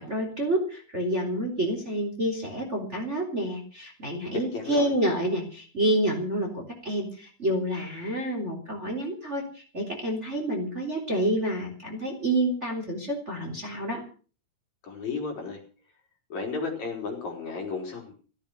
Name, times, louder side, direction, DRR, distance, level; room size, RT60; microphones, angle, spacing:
voice 1, 0.0-14.0, right 1 dB, 20° right, 2 dB, 3.4 m, -28 dB
voice 2, 4.3-4.9 14.8-15.6 16.3-18.1, left 4 dB, 50° left, 1 dB, 5.0 m, -33 dB
15.5 x 13.5 x 6.4 m, 0.39 s
omnidirectional pair, 4.4 m